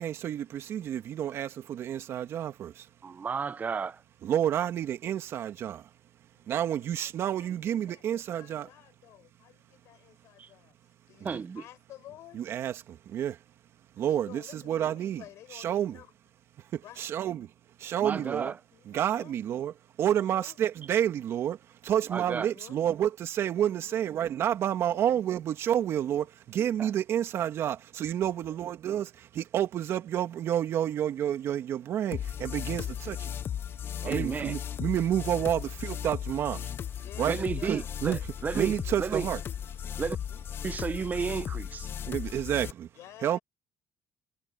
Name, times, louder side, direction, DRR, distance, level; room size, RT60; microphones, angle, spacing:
voice 1, 0.0-2.9 4.2-5.9 6.5-8.7 11.2-11.4 12.3-13.4 13.9-15.2 15.5-16.0 16.7-17.5 17.8-18.5 18.9-19.7 20.0-33.3 34.0-36.7 37.2-37.4 37.6-38.2 38.5-39.4 42.1-42.9 43.2-43.4, right 10 dB, 60° right, 2.6 m, -30 dB
voice 2, 3.0-4.0 10.4-10.5 11.2-11.6 18.0-18.5 22.1-22.5 26.8-26.9 34.0-34.5 37.3-38.7 39.0-39.3 40.0-40.2 40.6-41.9, right 5 dB, 35° right, 1.0 m, -32 dB
voice 3, 7.0-10.7 11.1-12.4 14.1-16.1 16.8-17.1 18.0-18.4 18.7-19.4 20.2-20.6 22.5-22.8 23.7-24.1 24.7-25.1 25.9-26.3 28.3-28.6 32.7-33.0 34.0-34.1 35.2-35.6 37.0-37.9 38.8-39.0 40.2-40.4 42.9-43.4, left 14 dB, 75° left, 5.8 m, -52 dB
sound 1, 32.1-42.7, left 9 dB, 50° left, 0.6 m, -36 dB
supercardioid pair, 85°, 5 cm